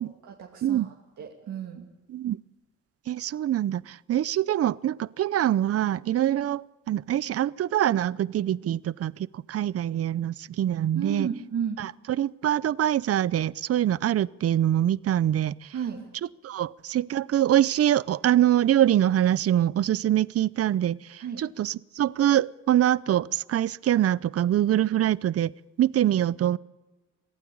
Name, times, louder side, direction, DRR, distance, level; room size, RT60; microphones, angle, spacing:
voice 1, 0.2-1.9 10.9-11.8 15.7-16.1 21.2-21.4, right 7 dB, 70° right, 2.5 m, -33 dB
voice 2, 3.1-11.3 11.8-11.9 12.2-15.7 16.4-25.5 25.8-26.6, right 11 dB, 55° right, 0.6 m, -24 dB
24.0 x 15.5 x 8.6 m
cardioid pair, 90°, 29 cm